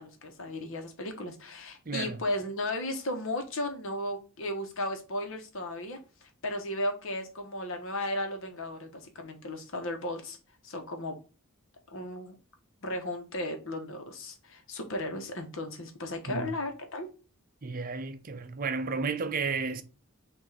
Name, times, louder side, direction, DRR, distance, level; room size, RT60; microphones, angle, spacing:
voice 1, 0.0-10.4 10.6-11.2 11.9-12.4 12.8-17.1, left 1 dB, 60° left, 1.1 m, -35 dB
voice 2, 1.9-2.2 16.3-16.5 17.6-19.8, right 4 dB, 40° right, 0.5 m, -32 dB
5.9 x 2.6 x 3.3 m
head